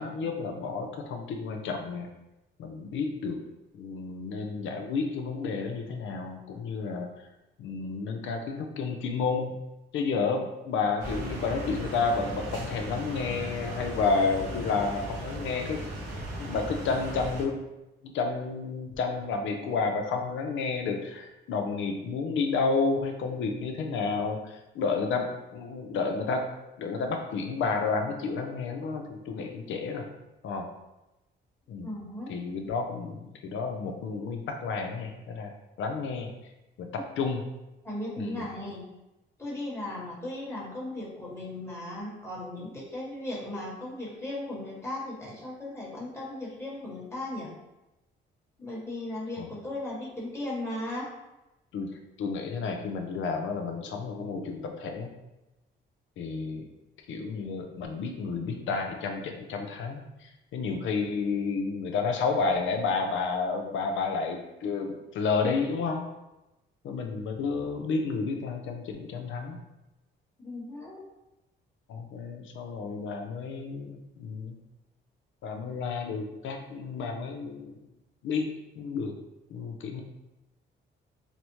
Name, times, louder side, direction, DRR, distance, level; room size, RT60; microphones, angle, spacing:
voice 1, 0.0-2.1 2.6-3.4 3.7-7.1 7.6-9.6 9.9-15.8 16.4-17.6 18.0-26.5 26.8-30.1 30.4-30.7 31.7-31.9 32.3-35.5 35.8-36.3 36.8-36.9 37.2-37.4 38.2-38.5 49.4-49.5 51.7-51.9 52.2-55.1 56.2-56.6 57.1-66.1 66.8-69.6 71.9-74.6 75.4-77.7 78.2-78.5 78.7-79.1 79.5-80.0, left 4 dB, 75° left, 4 dB, 0.5 m, -31 dB
sound 1, 11.0-17.4, right 1 dB, 80° right, 1.1 m, -37 dB
voice 2, 31.8-32.3 37.8-38.8 39.4-47.5 48.6-51.1 70.4-71.0, left 1 dB, 15° left, -5 dB, 1.2 m, -37 dB
4.0 x 2.1 x 3.0 m, 0.97 s
cardioid pair, 90°, 20 cm